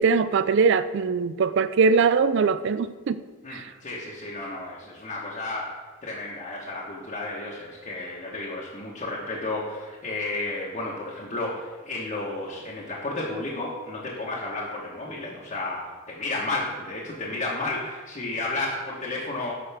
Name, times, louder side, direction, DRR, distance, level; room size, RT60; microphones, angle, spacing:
voice 1, 0.0-3.2 3.5-3.6, right 5 dB, 60° right, 14 dB, 0.4 m, -21 dB
voice 2, 3.4-19.5, left 2 dB, 35° left, -6 dB, 1.2 m, -32 dB
11.0 x 5.4 x 3.5 m, 1.3 s
head